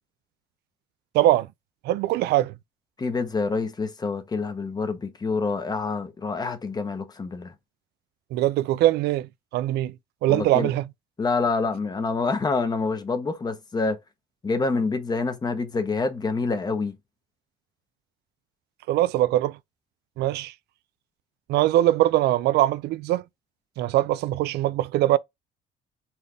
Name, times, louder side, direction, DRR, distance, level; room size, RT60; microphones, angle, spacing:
voice 1, 1.1-1.5 1.8-2.5 8.3-9.9 10.2-10.8 18.9-19.6 20.2-20.5 21.5-23.2 23.8-25.2, right 14 dB, 80° right, 0.5 m, -22 dB
voice 2, 3.0-7.5 10.3-10.7 11.2-14.0 14.4-17.0, left 4 dB, 25° left, 1.1 m, -27 dB
4.3 x 3.2 x 3.6 m
cardioid pair, 110°, 17 cm